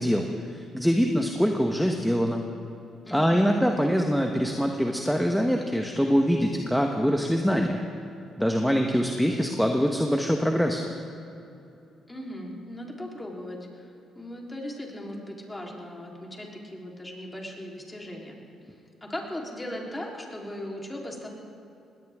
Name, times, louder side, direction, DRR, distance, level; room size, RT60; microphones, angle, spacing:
voice 1, 0.0-2.5 3.1-7.8 8.4-10.8, equal, ahead, 2 dB, 1.3 m, -24 dB
voice 2, 3.1-3.4 12.1-13.9 14.1-18.4 19.0-21.3, left 1 dB, 15° left, -1 dB, 3.8 m, -38 dB
21.0 x 17.5 x 3.7 m, 2.8 s
supercardioid pair, 70°, 0 cm